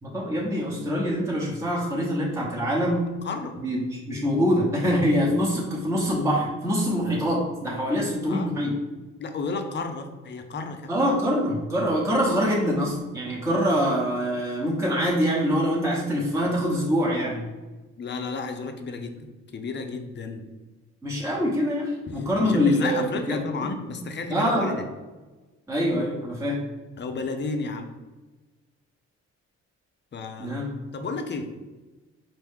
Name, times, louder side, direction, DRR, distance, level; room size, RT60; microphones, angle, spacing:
voice 1, 0.0-3.1 3.6-8.7 10.9-17.5 21.0-23.4 23.9-24.0 24.3-24.8 25.7-26.6 30.4-30.8, equal, 10° right, -4 dB, 1.0 m, -24 dB
voice 2, 3.2-3.5 8.3-8.5 9.2-11.0 18.0-20.4 22.1-24.8 27.0-27.9 30.1-30.6 30.9-31.5, left 4 dB, 35° left, 6 dB, 0.6 m, -32 dB
4.4 x 2.7 x 3.6 m, 1.2 s
cardioid pair, 90°, 30 cm